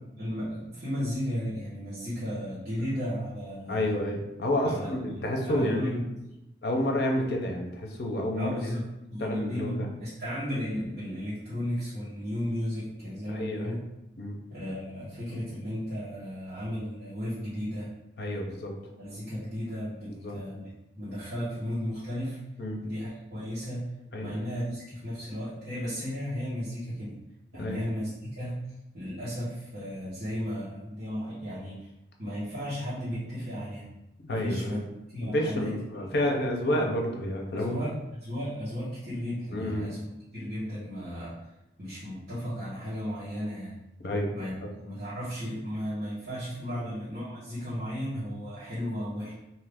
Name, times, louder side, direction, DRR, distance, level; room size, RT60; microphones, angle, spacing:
voice 1, 0.1-3.9 4.6-6.3 8.4-8.8 9.1-13.8 14.5-17.9 19.0-20.6 21.0-22.4 22.8-23.8 24.2-27.2 27.5-28.5 28.9-31.9 32.2-33.9 34.3-34.8 35.1-36.1 37.5-37.9 38.2-40.0 40.3-41.3 41.8-43.7 44.3-44.5 44.8-49.3, equal, 55° right, -14 dB, 1.2 m, -34 dB
voice 2, 3.7-5.9 6.6-8.5 9.2-9.9 13.3-13.8 14.2-14.3 18.2-18.7 20.2-20.4 22.6-22.8 24.1-24.4 27.6-27.8 34.3-34.8 35.2-37.7 39.5-39.9 44.0-44.3 44.6-44.7 46.7-46.9, left 1 dB, 65° left, 1 dB, 0.6 m, -29 dB
2.7 x 2.4 x 3.5 m, 0.91 s
head